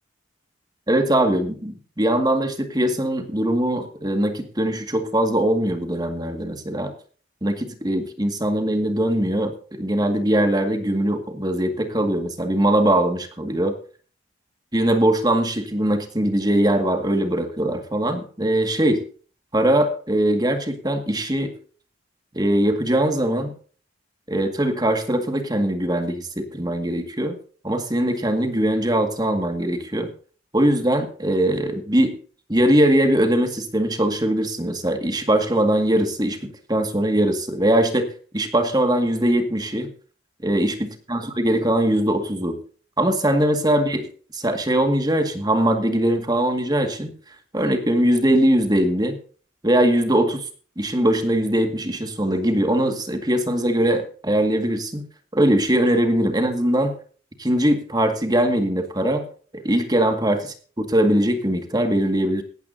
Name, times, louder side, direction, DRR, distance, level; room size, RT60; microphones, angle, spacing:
voice 1, 0.9-6.9 7.4-13.7 14.7-19.0 19.5-21.5 22.3-23.5 24.3-27.4 27.6-30.1 30.5-32.2 32.5-38.1 38.3-39.9 40.4-42.6 43.0-44.1 44.3-47.1 47.5-49.2 49.6-50.4 50.8-55.0 55.3-57.0 57.4-59.2 59.5-60.4 60.8-62.4, right 1 dB, 20° right, 6 dB, 2.0 m, -21 dB
17.0 x 13.0 x 2.8 m, 0.41 s
head